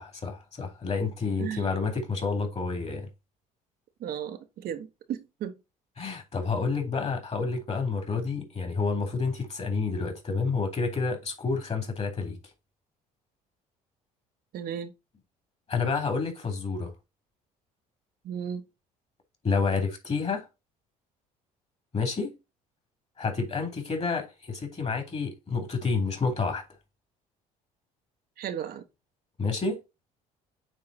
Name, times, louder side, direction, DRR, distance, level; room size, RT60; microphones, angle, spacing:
voice 1, 0.0-3.1 6.0-12.4 15.7-16.9 19.4-20.5 21.9-22.3 23.2-26.6 29.4-29.8, left 4 dB, 35° left, 3.5 m, -29 dB
voice 2, 1.4-1.7 4.0-5.5 14.5-14.9 18.2-18.7 28.4-28.8, right 9 dB, 60° right, 1.1 m, -35 dB
9.0 x 3.8 x 4.1 m
hypercardioid pair, 60°, 18 cm